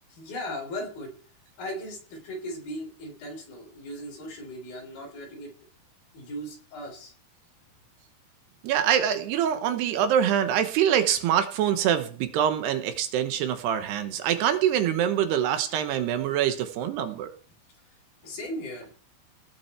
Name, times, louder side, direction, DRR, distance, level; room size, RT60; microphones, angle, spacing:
voice 1, 0.1-1.1 1.6-5.5 6.1-7.1 18.2-18.9, equal, 60° left, 2 dB, 5.4 m, -37 dB
voice 2, 8.6-17.3, right 9 dB, 85° right, 9 dB, 3.2 m, -25 dB
18.0 x 7.5 x 4.4 m, 0.43 s
omnidirectional pair, 4.7 m